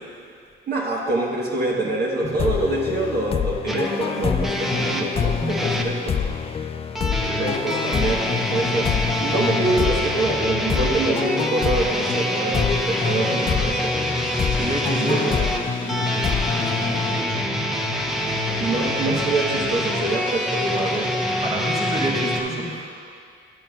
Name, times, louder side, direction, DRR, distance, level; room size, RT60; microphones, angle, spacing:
voice 1, 0.7-6.2 7.2-13.9 15.0-15.3 18.6-21.2, right 2 dB, 55° right, -3 dB, 1.2 m, -25 dB
sound 1, 2.4-17.8, left 7 dB, 30° left, 0.3 m, -27 dB
sound 2, 3.7-5.9 6.9-22.4, equal, ahead, 0.8 m, -26 dB
voice 2, 5.7-6.4 7.0-7.8 13.0-13.1 14.5-17.4 21.4-22.9, right 1 dB, 35° right, -1 dB, 1.4 m, -31 dB
sound 3, 12.2-22.5, left 3 dB, 75° left, 1.0 m, -40 dB
11.0 x 10.0 x 2.3 m, 2.3 s
cardioid pair, 90°, 20 cm